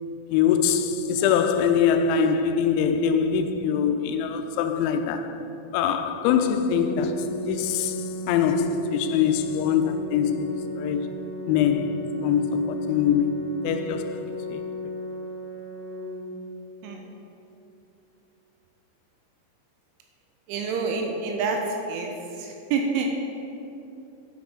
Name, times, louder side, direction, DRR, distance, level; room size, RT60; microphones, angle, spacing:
voice 1, 0.3-5.4 5.7-11.1 11.5-14.6, left 7 dB, 85° left, 2.9 m, -23 dB
Organ, 6.1-17.1, left 1 dB, 65° left, 0.9 m, -36 dB
voice 2, 20.5-22.1 22.4-23.1, right 4 dB, 85° right, 3.1 m, -27 dB
9.7 x 4.3 x 5.8 m
omnidirectional pair, 5.4 m